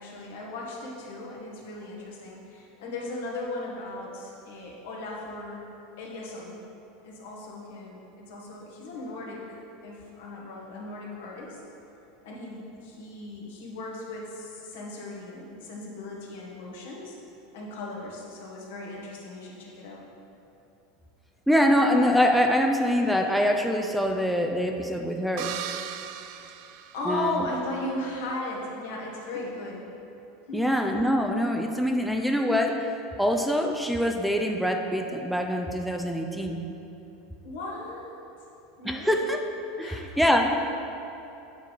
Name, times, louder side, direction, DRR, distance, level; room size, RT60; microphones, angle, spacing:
voice 1, 0.0-5.6 6.0-6.6 7.0-9.4 9.8-11.6 12.2-17.2 17.5-20.0 26.9-29.9 30.5-30.8 37.4-38.2 38.8-39.2 39.7-40.1, left 2 dB, 70° left, -3 dB, 1.4 m, -37 dB
voice 2, 21.5-25.6 27.1-27.5 30.5-32.8 33.2-36.6 38.9-39.4 39.8-40.6, equal, ahead, 3 dB, 0.5 m, -24 dB
sound 1, 25.4-27.6, right 10 dB, 60° right, 0.3 m, -38 dB
8.1 x 3.7 x 4.8 m, 2.9 s
hypercardioid pair, 90°, 0 cm